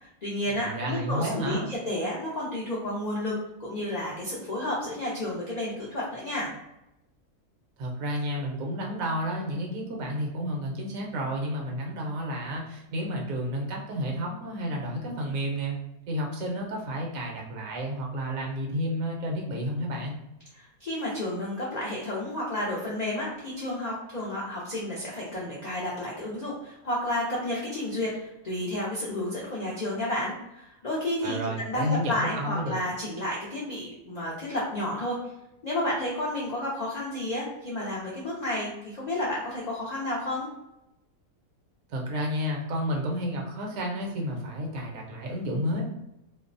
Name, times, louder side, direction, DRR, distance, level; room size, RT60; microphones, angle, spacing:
voice 1, 0.0-3.3 3.6-6.5 20.5-31.4 31.6-35.2 35.6-40.5, left 1 dB, 70° left, -5 dB, 0.4 m, -31 dB
voice 2, 0.6-1.7 7.8-15.8 16.1-20.2 31.2-32.8 41.9-45.8, equal, 75° right, 0 dB, 1.1 m, -31 dB
2.6 x 2.0 x 2.5 m, 0.87 s
omnidirectional pair, 1.5 m